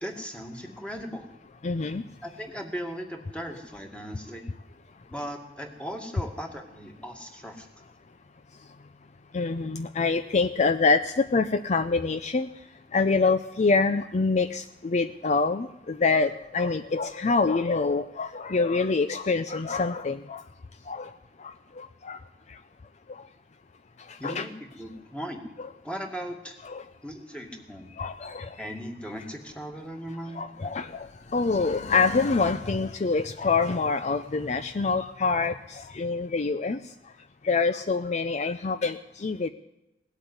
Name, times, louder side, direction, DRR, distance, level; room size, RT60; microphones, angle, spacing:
voice 1, 0.0-1.3 2.2-4.4 5.1-7.7 24.2-25.4 25.8-26.6 27.0-28.0 28.6-30.4, equal, 5° left, 3 dB, 2.2 m, -38 dB
voice 2, 1.6-2.0 9.3-12.5 12.9-20.4 20.9-21.1 21.8-22.2 24.2-24.5 26.7-26.8 28.0-28.5 30.4-31.1 31.3-36.8 37.4-39.5, left 4 dB, 40° left, 11 dB, 0.5 m, -25 dB
18.0 x 8.3 x 9.6 m, 0.93 s
head